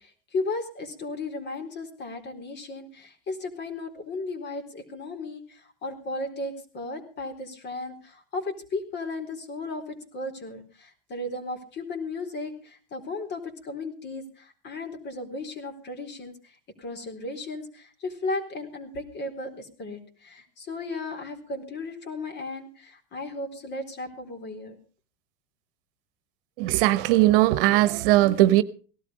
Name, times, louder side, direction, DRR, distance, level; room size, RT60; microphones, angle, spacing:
voice 1, 0.0-24.7, left 2 dB, 40° left, 4.1 m, -35 dB
voice 2, 26.6-28.6, right 16 dB, 65° right, 1.1 m, -19 dB
18.0 x 12.5 x 5.1 m
hypercardioid pair, 110°, 29 cm